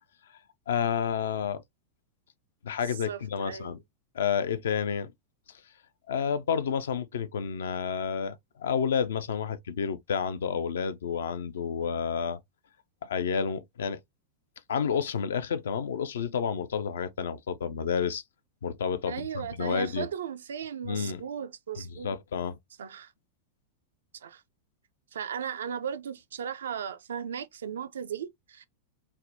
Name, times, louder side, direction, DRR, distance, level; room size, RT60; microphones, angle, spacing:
voice 1, 0.7-1.6 2.6-3.8 4.1-5.1 6.1-12.4 13.0-14.0 14.7-18.2 18.6-20.1 20.8-21.2 21.9-22.6, left 7 dB, 65° left, 0.3 m, -30 dB
voice 2, 2.9-3.8 19.1-22.1 22.8-23.1 24.1-24.4 25.1-28.6, right 8 dB, 65° right, 0.3 m, -36 dB
3.3 x 2.1 x 2.5 m
figure-of-eight pair, 90°, 0 cm